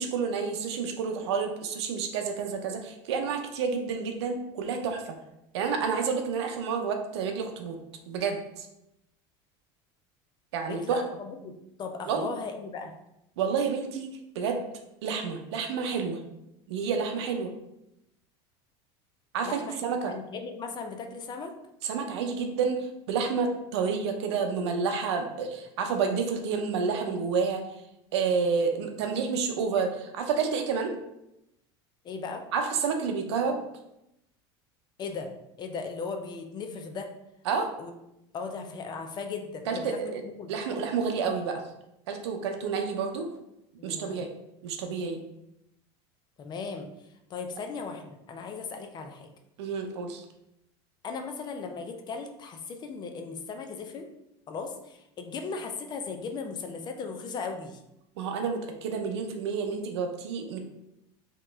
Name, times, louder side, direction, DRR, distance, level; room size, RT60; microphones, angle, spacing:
voice 1, 0.0-5.0 5.5-7.8 8.1-8.7 10.5-11.0 12.1-12.3 13.4-14.7 15.0-16.2 16.7-17.5 19.3-20.1 21.8-27.6 28.1-30.9 32.5-33.6 37.5-37.7 39.7-40.1 40.5-41.6 42.1-43.3 43.8-44.3 44.6-45.2 49.6-50.2 58.2-60.6, right 5 dB, 85° right, 4 dB, 0.6 m, -29 dB
voice 2, 10.7-12.9 19.4-21.5 32.0-32.4 35.0-35.3 35.6-37.1 37.8-37.9 38.3-40.1 40.4-40.5 43.8-44.2 46.4-46.9 47.3-49.3 51.0-54.1 54.5-57.8, left 4 dB, 30° left, 5 dB, 0.5 m, -37 dB
2.9 x 2.9 x 3.4 m, 0.85 s
supercardioid pair, 120°, 14 cm